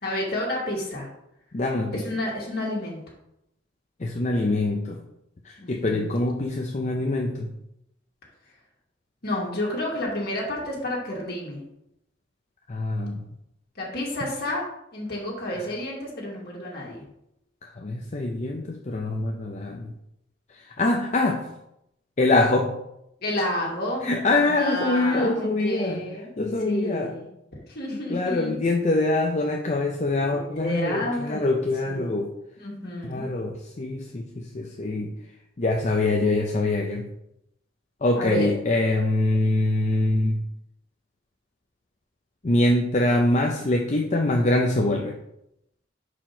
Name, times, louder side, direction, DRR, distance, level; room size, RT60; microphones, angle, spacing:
voice 1, 0.0-1.1 1.9-3.0 5.6-6.1 9.2-11.6 13.8-17.0 23.2-24.1 24.3-26.3 26.6-27.3 27.7-28.6 30.2-31.4 31.9-32.1 32.6-33.3 38.2-38.5, left 1 dB, 55° left, -3 dB, 2.2 m, -30 dB
voice 2, 1.5-2.0 4.0-5.0 5.4-7.5 12.7-13.2 17.6-19.9 20.5-21.5 22.2-22.7 24.0-26.1 26.4-27.1 28.1-32.3 33.1-35.1 35.6-37.1 38.0-40.4 42.4-45.1, left 2 dB, 40° left, 2 dB, 0.6 m, -24 dB
5.0 x 4.7 x 5.9 m, 0.82 s
head